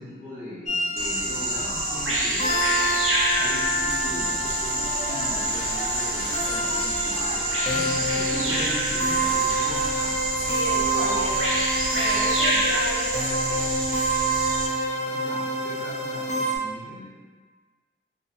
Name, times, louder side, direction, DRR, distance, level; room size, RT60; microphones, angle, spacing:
voice 1, 0.0-2.5 3.3-10.2 10.7-11.3 12.6-12.8 14.9-17.1, left 1 dB, 75° left, -12 dB, 1.1 m, -39 dB
sound 1, 0.7-16.6, right 1 dB, 35° left, 0.4 m, -27 dB
sound 2, 1.0-8.6, equal, 30° right, 0.9 m, -41 dB
Bird vocalization bird call bird song, 1.0-14.7, right 1 dB, 85° right, 0.5 m, -27 dB
voice 2, 10.4-11.6 11.9-13.6, equal, 60° right, -6 dB, 0.8 m, -34 dB
2.6 x 2.5 x 2.6 m, 1.4 s
wide cardioid pair, 60°, 21 cm